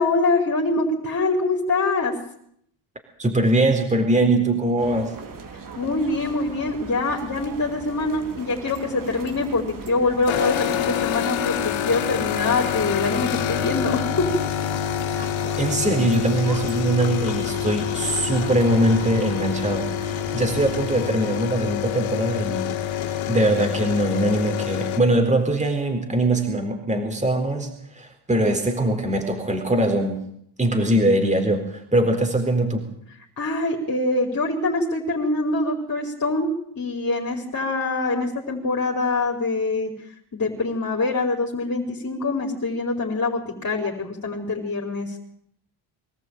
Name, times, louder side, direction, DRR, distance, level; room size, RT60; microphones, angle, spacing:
voice 1, 0.0-2.1 5.5-14.3 33.4-36.5 36.8-39.9 40.3-45.2, left 3 dB, 35° left, 0 dB, 5.0 m, -24 dB
voice 2, 3.2-5.1 15.6-30.2 30.6-32.8, right 1 dB, 15° right, 4 dB, 4.2 m, -22 dB
sound 1, 4.8-21.1, right 4 dB, 40° right, 3.6 m, -39 dB
sound 2, 10.3-25.0, left 10 dB, 70° left, 3.1 m, -27 dB
24.0 x 14.0 x 9.1 m, 0.70 s
cardioid pair, 90°, 49 cm